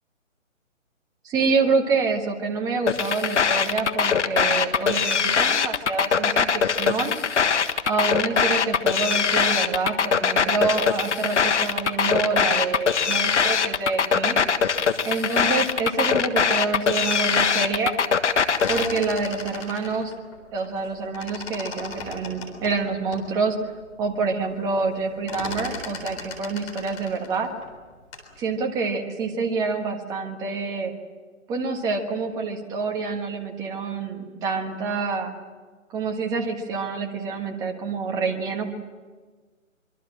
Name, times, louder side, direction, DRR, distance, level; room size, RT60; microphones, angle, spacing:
voice 1, 1.2-7.1 7.8-14.4 15.0-17.9 18.7-20.1 20.5-23.6 24.0-27.5 28.4-30.9 31.5-35.3 35.9-38.7, right 4 dB, 10° right, 3 dB, 1.4 m, -27 dB
sound 1, 2.9-18.9, left 6 dB, 60° left, 1.6 m, -22 dB
sound 2, 18.3-20.9 21.1-23.3 23.8-23.9 24.1-24.5 24.8-28.3, left 3 dB, 15° left, 3.9 m, -37 dB
24.5 x 23.5 x 7.5 m, 1.4 s
hypercardioid pair, 155°, 40 cm